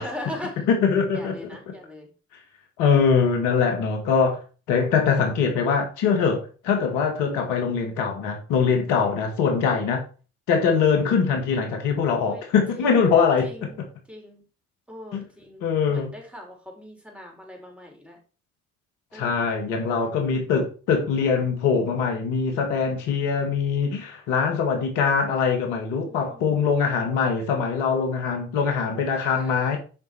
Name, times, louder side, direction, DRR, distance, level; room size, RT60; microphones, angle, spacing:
voice 1, 0.0-0.7 1.1-2.1 12.2-12.4 12.7-13.0 13.4-13.8 14.1-14.4 14.9-18.2 19.1-19.4 19.8-20.0 26.0-26.6 29.1-29.5, left 1 dB, 5° right, 4.7 m, -41 dB
voice 2, 0.7-1.4 2.8-4.4 4.7-10.0 10.5-13.5 15.1-15.2 15.6-16.1 19.1-29.8, left 6 dB, 80° left, 1.9 m, -22 dB
8.6 x 5.5 x 4.6 m
hypercardioid pair, 50°, 31 cm